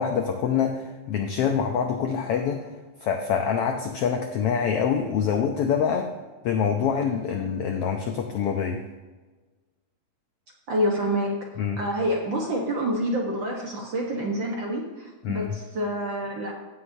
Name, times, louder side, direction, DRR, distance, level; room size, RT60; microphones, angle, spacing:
voice 1, 0.0-2.7 3.0-6.1 6.4-8.8 11.6-11.8 15.2-15.5, left 7 dB, 85° left, 4 dB, 1.3 m, -25 dB
voice 2, 10.7-11.4 11.8-16.5, equal, 55° right, -1 dB, 1.4 m, -27 dB
16.0 x 7.7 x 2.7 m, 1.3 s
omnidirectional pair, 3.5 m